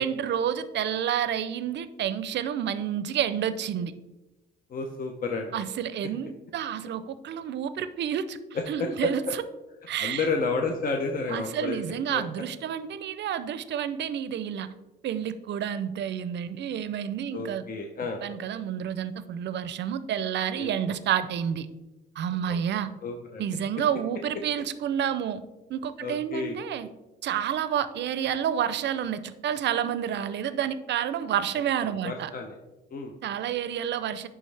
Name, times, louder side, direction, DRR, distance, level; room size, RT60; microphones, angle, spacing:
voice 1, 0.0-3.9 5.5-8.4 8.7-9.4 9.9-10.3 11.3-14.7 15.0-17.7 18.2-21.7 22.2-22.9 23.4-25.4 25.7-26.9 27.2-32.3 33.2-34.3, right 9 dB, 60° right, 13 dB, 0.5 m, -29 dB
voice 2, 4.7-5.5 8.5-9.1 10.0-11.8 12.1-12.2 17.3-18.2 20.6-20.7 22.5-22.6 23.0-23.4 26.0-26.6 32.0-32.6 32.9-33.2, left 4 dB, 45° left, 3 dB, 0.7 m, -31 dB
10.5 x 3.5 x 3.3 m, 1.1 s
cardioid pair, 90°, 20 cm